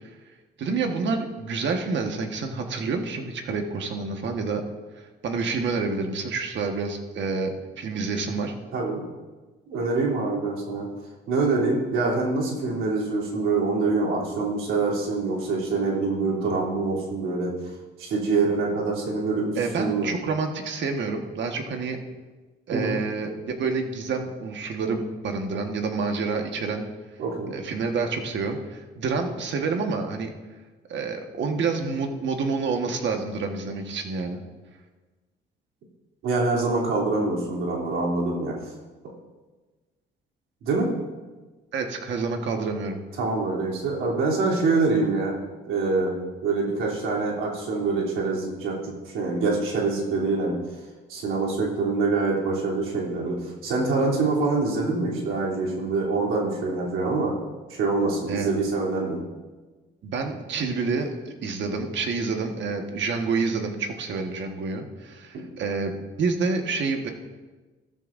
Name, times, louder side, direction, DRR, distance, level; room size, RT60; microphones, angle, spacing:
voice 1, 0.6-4.6 5.0-8.5 19.6-22.0 22.7-26.8 27.5-30.3 30.9-34.4 41.7-43.0 58.3-58.5 60.0-67.1, right 4 dB, 65° right, 4 dB, 1.5 m, -28 dB
voice 2, 9.7-10.9 11.3-17.5 18.0-20.1 22.7-23.0 27.2-27.5 36.2-38.5 40.6-40.9 43.2-45.3 45.7-46.1 46.4-50.6 51.1-57.3 57.7-59.2 65.3-65.4, right 3 dB, 90° right, -4 dB, 3.2 m, -25 dB
15.0 x 13.5 x 2.6 m, 1.3 s
cardioid pair, 90°, 20 cm